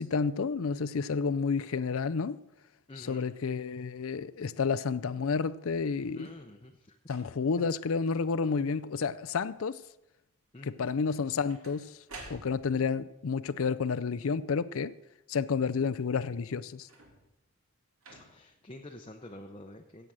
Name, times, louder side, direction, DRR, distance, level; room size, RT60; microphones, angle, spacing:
voice 1, 0.0-2.4 3.0-6.3 7.1-9.8 10.6-12.0 12.3-14.9 15.3-16.9, left 5 dB, 70° left, 0.5 m, -30 dB
voice 2, 2.9-3.3 6.1-7.0 10.5-10.9 18.1-20.1, left 1 dB, 25° left, 0.7 m, -48 dB
sound 1, 6.1-6.5 7.0-7.6 8.2-8.5 8.8-9.4 11.1-12.9 16.8-17.4 18.0-18.6 19.4-19.5, right 2 dB, 75° right, 3.3 m, -52 dB
16.0 x 8.1 x 6.3 m
head